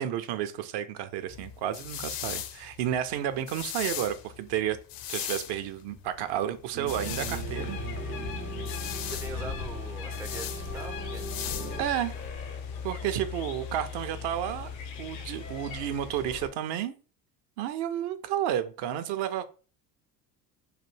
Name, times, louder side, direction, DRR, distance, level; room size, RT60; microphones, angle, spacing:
voice 1, 0.0-4.8 5.1-7.8 11.8-12.1 12.8-14.7 15.0-16.9 17.6-19.4, right 11 dB, 55° right, 0.6 m, -31 dB
sound 1, 1.3-12.3, left 10 dB, 45° left, 0.5 m, -39 dB
sound 2, 6.7-11.8, right 4 dB, 85° right, 0.9 m, -40 dB
sound 3, 6.9-16.5, left 6 dB, 80° left, 0.7 m, -38 dB
voice 2, 9.1-11.3 13.4-13.5, right 2 dB, 5° right, 0.3 m, -42 dB
3.3 x 2.2 x 3.1 m
hypercardioid pair, 70°, 49 cm